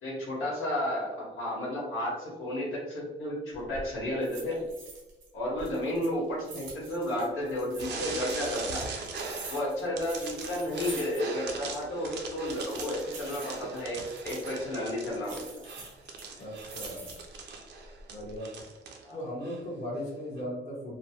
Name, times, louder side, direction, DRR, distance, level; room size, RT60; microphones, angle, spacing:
voice 1, 0.0-4.6 5.3-8.9 9.5-14.0 14.2-15.4 19.0-19.2, left 1 dB, 80° left, -5 dB, 1.3 m, -32 dB
sound 1, 3.5-3.9 4.2-5.3 5.6-7.9 8.3-11.5 11.7-11.8 12.4-14.6 15.2-17.4 17.9-18.4, right 3 dB, 90° right, 0.9 m, -46 dB
sound 2, 7.8-9.7 10.0-19.0 19.4-19.6 20.4-20.5, right 4 dB, 60° right, 0.5 m, -40 dB
voice 2, 16.4-17.1 18.1-18.5 19.1-21.0, equal, 35° left, -5 dB, 1.0 m, -37 dB
2.9 x 2.0 x 2.8 m, 1.0 s
cardioid pair, 90°, 20 cm